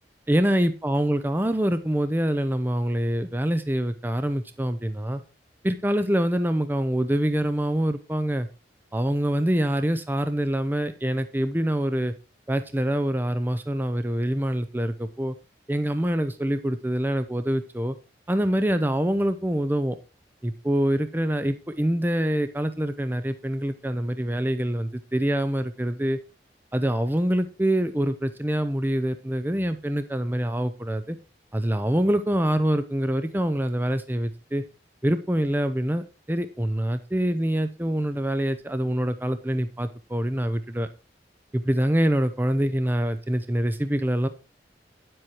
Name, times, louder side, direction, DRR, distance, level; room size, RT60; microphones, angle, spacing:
voice 1, 0.3-5.2 5.6-8.5 8.9-12.1 12.5-15.3 15.7-18.0 18.3-20.0 20.4-26.2 26.7-31.2 31.5-34.6 35.0-40.9 41.5-44.3, right 1 dB, 10° right, 10 dB, 0.6 m, -25 dB
9.9 x 7.8 x 4.4 m, 0.31 s
head